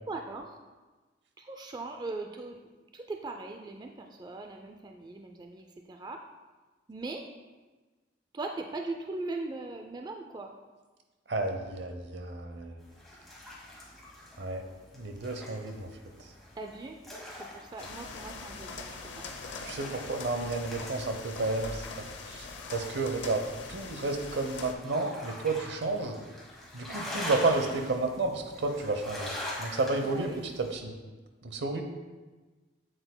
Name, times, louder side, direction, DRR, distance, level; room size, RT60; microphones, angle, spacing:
voice 1, 0.1-0.6 1.4-2.6 2.9-6.2 6.9-7.3 8.3-10.5 16.6-17.0 17.3-19.3 30.0-30.4, right 3 dB, 25° right, 4 dB, 0.4 m, -39 dB
voice 2, 11.3-12.8 14.4-14.6 14.9-15.9 19.6-22.5 22.7-23.4 23.7-26.2 26.7-29.3 29.6-30.9 31.4-31.8, right 3 dB, 70° right, 5 dB, 0.8 m, -31 dB
sound 1, 12.8-30.7, left 1 dB, ahead, 2.0 m, -44 dB
sound 2, 17.8-24.7, left 4 dB, 70° left, 0.7 m, -42 dB
7.9 x 7.8 x 2.2 m, 1.3 s
head